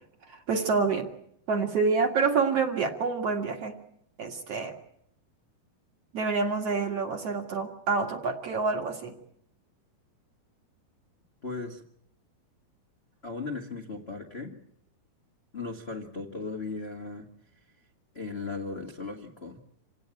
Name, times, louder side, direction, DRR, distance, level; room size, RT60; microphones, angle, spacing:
voice 1, 0.3-1.1 1.5-3.7 4.2-4.7 6.1-9.2, right 4 dB, 45° right, 3 dB, 2.6 m, -27 dB
voice 2, 11.4-11.8 13.2-14.6 15.5-17.3 18.1-19.6, left 3 dB, 30° left, 0 dB, 1.1 m, -37 dB
27.0 x 18.0 x 8.9 m, 0.73 s
omnidirectional pair, 4.3 m